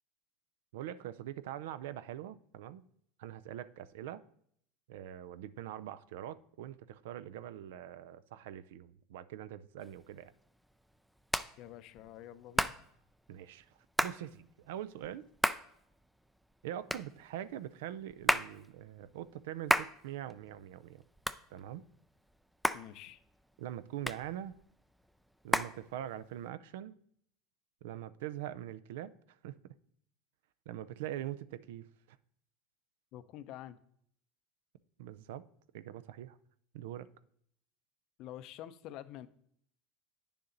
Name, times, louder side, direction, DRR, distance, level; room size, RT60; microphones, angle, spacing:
voice 1, 0.7-2.8 3.2-4.2 4.9-10.3 13.3-13.7 14.0-15.2 16.6-21.0 21.5-21.8 23.6-24.6 25.4-27.0 27.8-29.1 29.4-29.7 30.7-31.9 35.0-35.4 35.7-36.4 36.7-37.1, right 11 dB, 85° right, 15 dB, 0.5 m, -43 dB
Hands, 9.8-26.5, equal, ahead, 0.3 m, -37 dB
voice 2, 11.6-12.7 22.7-23.2 33.1-33.8 38.2-39.3, left 12 dB, 50° left, 14 dB, 0.5 m, -47 dB
9.6 x 6.8 x 3.9 m, 0.67 s
supercardioid pair, 145°, 0 cm